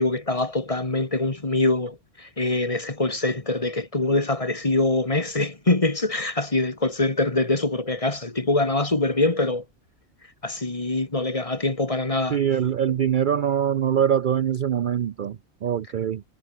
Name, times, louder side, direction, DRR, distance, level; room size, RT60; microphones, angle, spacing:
voice 1, 0.0-9.6 10.4-12.4, left 2 dB, 30° left, 2.0 m, -24 dB
voice 2, 12.3-16.2, right 9 dB, 55° right, 0.6 m, -23 dB
omnidirectional pair, 1.2 m